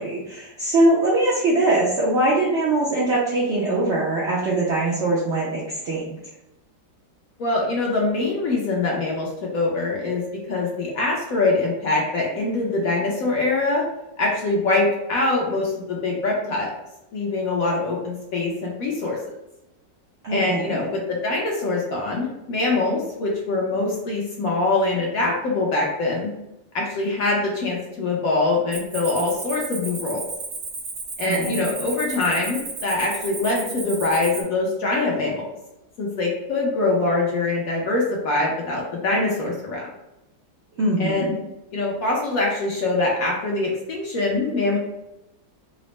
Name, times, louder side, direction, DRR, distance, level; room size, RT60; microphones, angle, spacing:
voice 1, 0.0-6.1 20.2-20.8 31.3-31.7 40.8-41.3, right 2 dB, 65° right, -5 dB, 0.6 m, -22 dB
voice 2, 7.4-10.2 10.5-13.8 14.2-16.7 17.1-19.2 20.3-26.3 26.7-30.2 31.2-35.4 36.0-39.9 41.0-41.4 41.7-44.8, left 2 dB, 65° left, -2 dB, 0.9 m, -23 dB
Cricket, 28.7-34.4, right 3 dB, 85° right, 1.7 m, -33 dB
4.0 x 2.0 x 3.1 m, 0.93 s
omnidirectional pair, 2.0 m